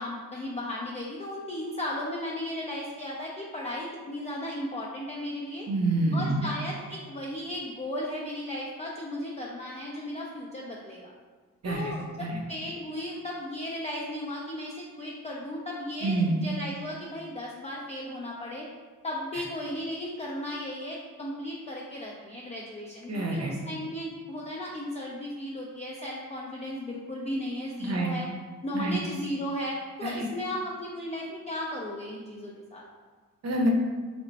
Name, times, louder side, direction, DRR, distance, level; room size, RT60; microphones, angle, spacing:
voice 1, 0.0-5.7 6.1-11.1 11.6-18.7 19.0-28.3 28.6-32.8, left 1 dB, 20° left, -4 dB, 0.4 m, -35 dB
voice 2, 5.7-6.5 11.6-12.4 16.0-16.4 19.3-19.4 23.1-23.5 27.8-28.1 28.7-29.0 30.0-30.3 33.4-33.7, right 2 dB, 50° right, 1 dB, 0.7 m, -27 dB
3.2 x 2.1 x 3.9 m, 1.4 s
cardioid pair, 80°, 34 cm